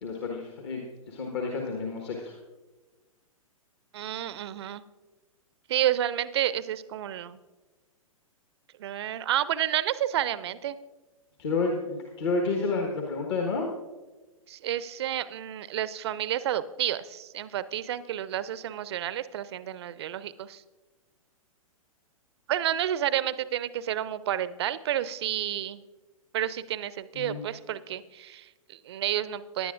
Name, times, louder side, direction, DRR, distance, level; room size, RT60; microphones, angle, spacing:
voice 1, 0.0-2.3 11.4-13.7 27.1-27.4, left 3 dB, 50° left, 1 dB, 1.4 m, -30 dB
voice 2, 3.9-4.8 5.7-7.4 8.8-10.8 14.5-20.6 22.5-25.8 26.3-29.7, right 11 dB, 45° right, 17 dB, 0.5 m, -30 dB
18.0 x 10.5 x 2.5 m, 1.2 s
figure-of-eight pair, 110°, 18 cm